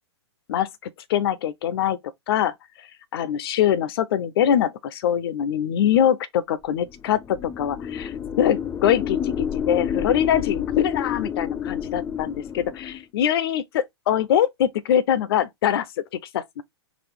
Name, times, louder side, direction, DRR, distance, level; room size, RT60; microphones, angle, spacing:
voice 1, 1.1-2.0 2.3-2.5 3.1-15.9 16.3-16.6, left 10 dB, 55° left, 0.7 m, -23 dB
sound 1, 6.9-13.0, left 8 dB, 15° left, 0.4 m, -29 dB
4.1 x 2.4 x 4.6 m
hypercardioid pair, 125°, 15 cm